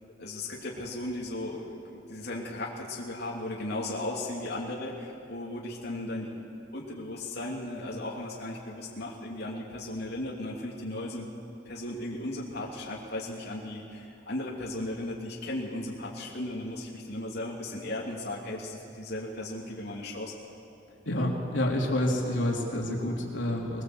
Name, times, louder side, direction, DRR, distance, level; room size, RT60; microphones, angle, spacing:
voice 1, 0.2-6.3 6.7-11.3 11.6-20.3, left 1 dB, 60° left, -4 dB, 2.9 m, -36 dB
voice 2, 21.0-23.8, left 1 dB, 80° left, -1 dB, 3.4 m, -28 dB
22.0 x 21.5 x 8.0 m, 2.6 s
head